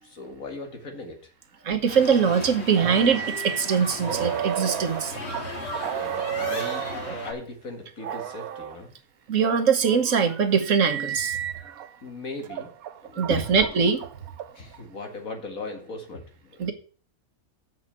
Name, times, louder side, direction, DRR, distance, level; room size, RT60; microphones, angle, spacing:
voice 1, 0.0-1.2 5.8-6.9 7.2-8.9 12.0-12.7 13.0-13.4 14.5-16.7, left 3 dB, 70° left, 3 dB, 2.4 m, -37 dB
voice 2, 1.6-5.1 9.3-11.4 13.2-14.0 16.6-16.7, right 6 dB, 65° right, 7 dB, 1.5 m, -22 dB
sound 1, 1.9-7.3, left 2 dB, 50° left, 2.1 m, -36 dB
sound 2, 2.8-7.3 8.0-8.8 9.5-11.9 12.4-14.8, right 10 dB, 80° right, 1.2 m, -33 dB
7.7 x 6.0 x 7.5 m, 0.42 s
omnidirectional pair, 1.5 m